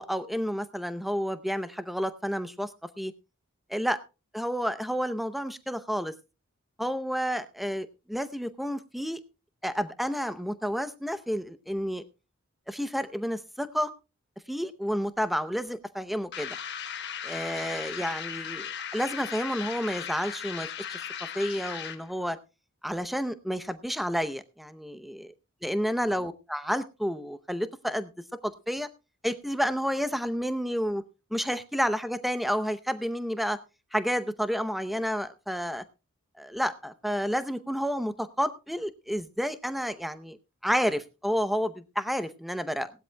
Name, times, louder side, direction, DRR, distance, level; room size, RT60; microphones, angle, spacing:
voice 1, 0.0-2.7 3.0-3.1 3.7-4.0 4.3-6.1 6.8-9.2 9.6-12.0 12.7-13.9 14.5-16.6 17.2-21.0 21.3-22.4 22.8-25.3 25.6-28.1 28.4-28.9 29.2-31.0 31.3-33.6 33.9-35.8 36.4-40.4 40.6-42.9, equal, ahead, 12 dB, 0.6 m, -30 dB
sound 1, 16.3-22.1, left 8 dB, 50° left, 1.3 m, -37 dB
18.5 x 12.5 x 2.2 m, 0.29 s
head